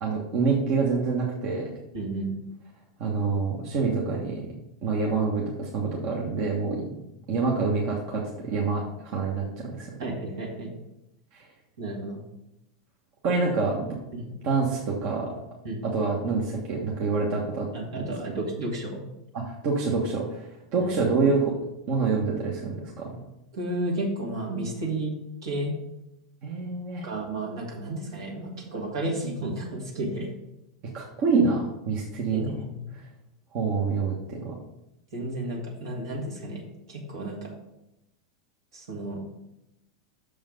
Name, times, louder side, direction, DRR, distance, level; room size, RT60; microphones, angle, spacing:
voice 1, 0.0-1.7 3.0-4.5 4.8-6.9 7.3-9.9 13.2-13.9 14.4-15.3 15.8-17.7 19.3-21.5 21.9-23.2 26.4-27.1 30.9-32.5 33.5-34.5, right 4 dB, 50° right, -2 dB, 1.4 m, -26 dB
voice 2, 1.9-2.3 10.0-10.7 11.8-12.2 14.1-14.3 15.6-15.8 17.7-19.0 20.8-21.0 23.5-25.2 25.4-25.8 27.0-30.3 32.3-32.8 35.1-36.6 36.9-37.5 38.7-39.2, right 1 dB, 75° right, -2 dB, 2.3 m, -32 dB
6.6 x 5.5 x 5.2 m, 0.88 s
hypercardioid pair, 95°, 2 cm